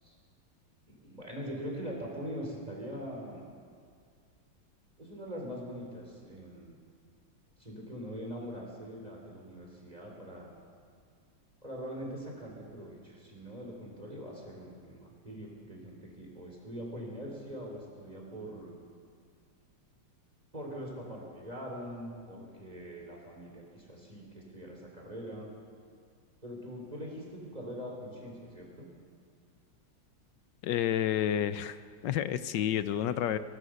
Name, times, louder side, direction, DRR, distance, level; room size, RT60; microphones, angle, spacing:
voice 1, 0.9-3.5 5.0-6.7 7.6-10.5 11.6-18.7 20.5-25.5 26.4-28.9, equal, 20° right, -1 dB, 4.4 m, -42 dB
voice 2, 30.6-31.8 32.0-33.4, left 10 dB, 80° left, 12 dB, 1.4 m, -29 dB
24.0 x 19.0 x 6.5 m, 2.1 s
omnidirectional pair, 2.0 m